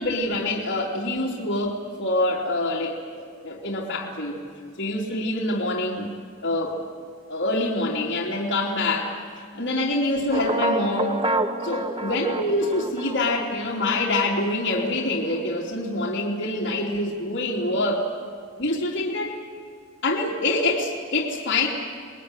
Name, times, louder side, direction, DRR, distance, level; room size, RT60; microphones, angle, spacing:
voice 1, 0.0-4.4 4.8-6.1 6.4-6.8 7.3-9.1 9.5-11.2 11.6-18.1 18.6-19.4 20.0-21.7, left 2 dB, 55° left, -4 dB, 3.3 m, -25 dB
sound 1, 10.3-14.5, right 1 dB, 25° right, 0.9 m, -28 dB
27.0 x 20.5 x 9.9 m, 2.2 s
head